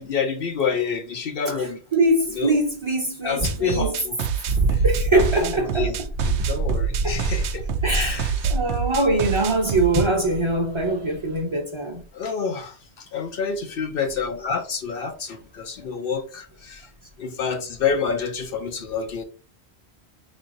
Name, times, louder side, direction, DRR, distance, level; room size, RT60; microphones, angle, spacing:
voice 1, 0.0-1.8 2.4-2.5 3.2-4.2 4.7-4.8 5.1-7.6 7.9-8.3 12.1-12.8 13.1-16.8 17.2-19.2, left 5 dB, 65° left, 0.8 m, -28 dB
voice 2, 1.9-3.9 4.8-5.9 7.0-7.2 7.8-8.2 8.5-12.0, right 2 dB, 30° right, 0.9 m, -22 dB
sound 1, 3.4-10.1, right 8 dB, 90° right, 0.9 m, -27 dB
sound 2, 4.5-10.9 11.2-11.4, right 2 dB, 60° right, 1.0 m, -27 dB
3.9 x 3.2 x 2.6 m
omnidirectional pair, 1.1 m